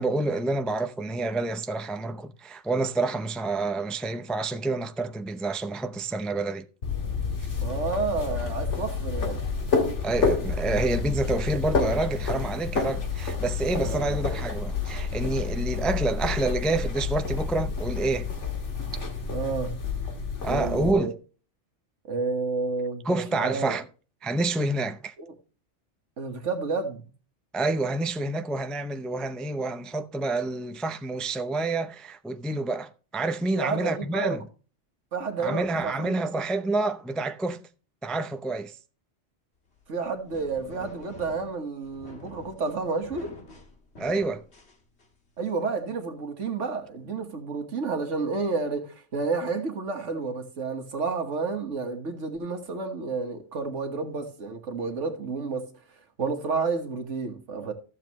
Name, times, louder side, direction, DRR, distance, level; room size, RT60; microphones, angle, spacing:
voice 1, 0.0-6.6 10.0-18.3 20.4-21.2 23.0-23.8 24.2-25.1 27.5-34.4 35.4-37.6 38.0-38.8 44.0-44.4, right 2 dB, ahead, 0.3 m, -28 dB
sound 1, 6.8-20.9, left 4 dB, 80° left, 2.0 m, -29 dB
voice 2, 7.6-9.4 13.7-14.2 19.3-19.7 20.5-21.1 22.1-23.7 26.2-27.0 33.6-34.4 35.1-36.2 39.9-43.3 45.4-55.7 56.2-57.7, right 4 dB, 85° right, 1.8 m, -30 dB
sound 2, 39.7-45.4, left 1 dB, 65° left, 2.3 m, -47 dB
14.0 x 7.4 x 3.0 m
omnidirectional pair, 1.2 m